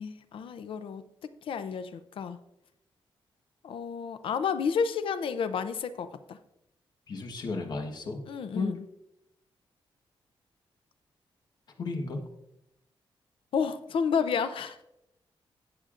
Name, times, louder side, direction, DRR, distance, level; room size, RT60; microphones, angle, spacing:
voice 1, 0.0-2.4 3.6-6.4 8.3-8.8 13.5-14.8, left 6 dB, 70° left, 12 dB, 0.6 m, -31 dB
voice 2, 7.1-8.2 8.5-8.7 11.8-12.2, left 3 dB, 50° left, 4 dB, 1.2 m, -33 dB
18.0 x 6.7 x 2.5 m, 0.85 s
wide cardioid pair, 170°, 9 cm